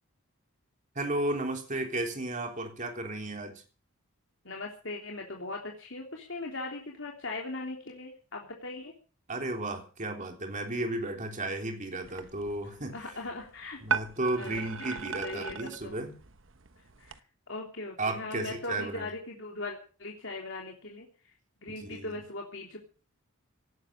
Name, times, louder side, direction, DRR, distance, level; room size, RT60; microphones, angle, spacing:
voice 1, 1.0-3.6 9.3-13.0 13.8-16.1 18.0-19.1 21.7-22.1, right 2 dB, 35° right, 3 dB, 3.6 m, -34 dB
voice 2, 4.4-8.9 12.9-13.8 14.4-16.0 17.0-17.2 17.5-21.1 21.6-22.8, left 2 dB, 60° left, 0 dB, 3.3 m, -39 dB
sound 1, 12.0-17.2, right 6 dB, 60° right, 1.2 m, -38 dB
18.0 x 12.0 x 6.5 m, 0.39 s
head